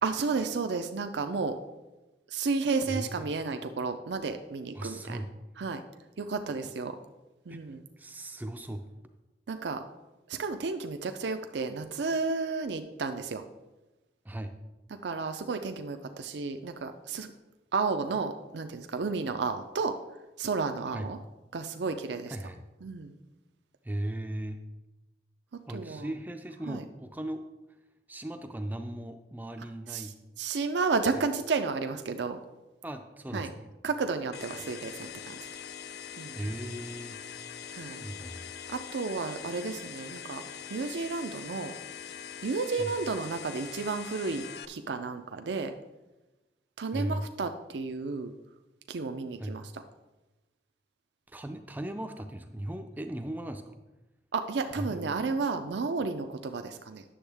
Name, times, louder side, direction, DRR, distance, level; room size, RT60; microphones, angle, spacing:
voice 1, 0.0-1.6 2.3-5.2 5.6-5.8 6.2-7.0 7.5-7.8 9.5-9.8 10.3-13.4 15.0-17.3 17.7-19.9 20.4-21.2 21.5-22.4 22.8-23.1 25.7-26.1 26.7-26.8 29.9-30.1 30.4-32.4 33.3-33.5 33.8-35.5 36.2-36.4 37.7-38.1 38.7-40.4 40.7-41.7 42.4-45.7 46.8-48.3 48.9-49.6 54.3-57.0, right 4 dB, 85° right, 7 dB, 0.5 m, -32 dB
voice 2, 2.9-3.4 4.7-5.3 7.5-8.9 14.2-14.6 20.9-21.1 22.3-22.6 23.8-24.6 25.7-27.4 28.1-30.2 31.1-31.2 32.8-33.7 36.3-37.2 38.0-38.4 42.8-42.9 46.9-47.2 49.4-49.6 51.3-53.8 54.8-55.2, right 1 dB, 10° right, 6 dB, 0.4 m, -37 dB
sound 1, 34.3-44.7, left 8 dB, 70° left, 0.4 m, -43 dB
10.0 x 7.1 x 3.4 m, 1.1 s
head